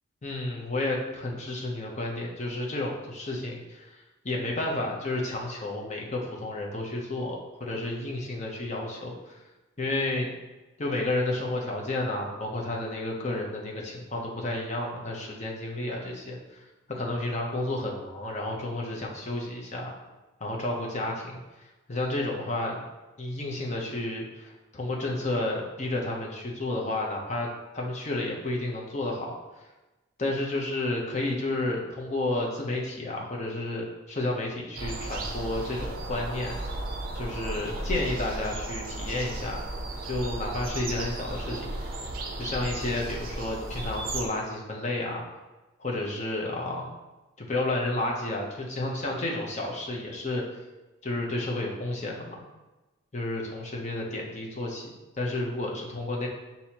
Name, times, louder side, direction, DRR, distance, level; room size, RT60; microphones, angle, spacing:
voice 1, 0.2-9.4 9.8-10.3 10.8-16.6 16.9-19.9 20.4-22.9 23.2-27.5 27.7-29.3 30.2-36.6 37.1-39.6 40.0-41.7 42.4-45.2 45.8-46.9 47.4-50.4 51.0-52.4 53.1-56.3, left 2 dB, 35° left, -1 dB, 0.7 m, -31 dB
sound 1, 34.8-44.3, right 2 dB, 45° right, 0.5 m, -35 dB
6.1 x 2.8 x 2.8 m, 1.1 s
head